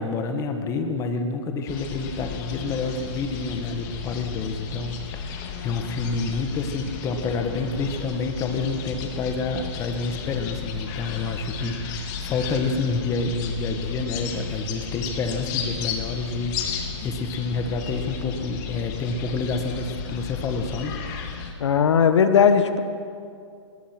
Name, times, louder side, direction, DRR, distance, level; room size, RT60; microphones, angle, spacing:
voice 1, 0.0-20.9, left 3 dB, 20° left, 6 dB, 1.8 m, -28 dB
sound 1, 1.7-21.5, left 7 dB, 35° left, 3.0 m, -34 dB
voice 2, 21.6-22.8, left 7 dB, 65° left, 9 dB, 1.6 m, -17 dB
25.5 x 21.0 x 6.2 m, 2.4 s
hypercardioid pair, 140°, 16 cm